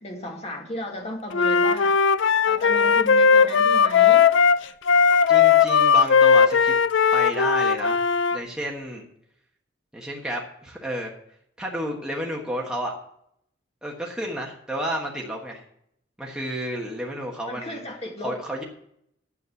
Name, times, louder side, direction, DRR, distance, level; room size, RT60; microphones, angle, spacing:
voice 1, 0.0-2.0 2.5-4.3 17.5-18.4, left 1 dB, 35° left, 1 dB, 2.1 m, -34 dB
Wind instrument woodwind instrument, 1.3-8.4, left 6 dB, 70° left, 0.4 m, -18 dB
voice 2, 5.3-6.8 7.1-8.0 8.3-9.1 9.9-11.1 11.6-12.9 13.8-15.6 16.2-17.8 18.2-18.6, right 1 dB, 5° right, -2 dB, 1.4 m, -31 dB
9.6 x 7.7 x 6.9 m, 0.72 s
head